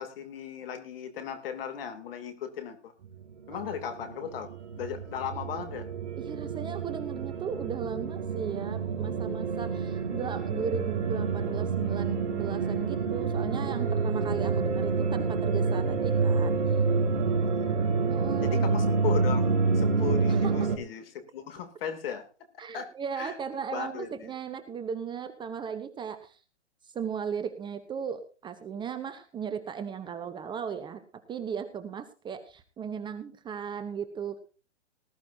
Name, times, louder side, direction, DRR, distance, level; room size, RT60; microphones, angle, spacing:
voice 1, 0.0-2.9 3.5-4.5 4.8-5.9 17.4-17.6 18.4-19.5 19.7-22.3 22.7-23.4 23.7-24.3, left 8 dB, 55° left, 9 dB, 2.9 m, -36 dB
sound 1, 3.0-20.8, right 4 dB, 80° right, 2.2 m, -28 dB
voice 2, 6.2-16.6 18.1-18.6 20.3-20.7 22.6-26.4 26.9-31.0 31.3-34.4, right 7 dB, 15° right, 10 dB, 0.9 m, -36 dB
19.0 x 12.5 x 2.8 m, 0.34 s
hypercardioid pair, 130°, 35 cm